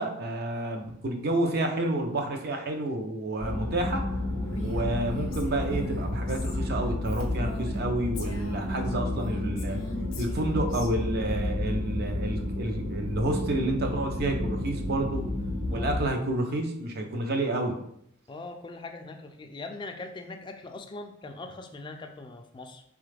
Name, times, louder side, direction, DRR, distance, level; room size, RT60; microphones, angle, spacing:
voice 1, 0.0-4.0 4.6-9.8 10.2-15.2 15.7-17.7, right 1 dB, 50° right, 3 dB, 0.5 m, -29 dB
sound 1, 3.4-16.1, left 1 dB, 75° right, 0.9 m, -31 dB
Female speech woman speaking, 4.4-7.8 8.1-10.9, equal, 75° left, 0.6 m, -41 dB
voice 2, 15.7-16.0 18.3-22.8, left 2 dB, 25° left, 5 dB, 0.3 m, -41 dB
4.1 x 2.3 x 3.2 m, 0.74 s
head